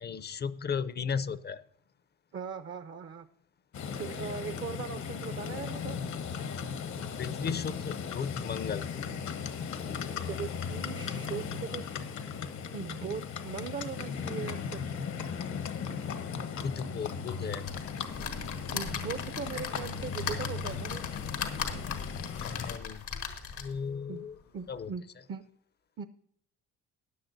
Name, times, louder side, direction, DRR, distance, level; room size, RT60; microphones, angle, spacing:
voice 1, 0.0-1.6 7.2-8.8 16.6-17.7 22.4-23.3 23.6-24.3 24.7-24.9, left 6 dB, 35° left, 15 dB, 0.5 m, -35 dB
voice 2, 2.3-3.3 3.9-6.0 10.3-11.8 12.7-14.9 18.7-21.1 24.1-24.3 24.5-25.0 25.3-25.4 26.0-26.1, right 6 dB, 40° right, 11 dB, 0.6 m, -39 dB
Livestock farm animals working animals, 3.7-22.8, left 6 dB, 70° left, 1.1 m, -37 dB
sound 1, 17.6-23.9 24.4-24.5 24.8-24.9, left 7 dB, 90° left, 1.5 m, -38 dB
14.5 x 9.7 x 2.6 m, 0.69 s
cardioid pair, 90°, 30 cm